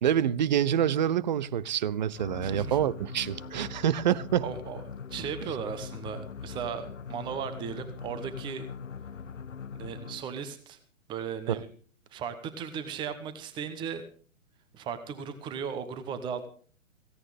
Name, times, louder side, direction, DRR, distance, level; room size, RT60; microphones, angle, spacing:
voice 1, 0.0-4.4 11.5-11.6, right 10 dB, 35° right, 0.7 m, -26 dB
sound 1, 2.1-10.4, left 6 dB, 70° left, 0.8 m, -41 dB
voice 2, 2.4-2.8 4.4-4.8 5.1-8.6 9.7-10.8 11.1-11.7 12.1-14.0 14.7-16.5, right 7 dB, 10° right, 1.1 m, -36 dB
17.0 x 16.5 x 3.6 m
figure-of-eight pair, 125°, 39 cm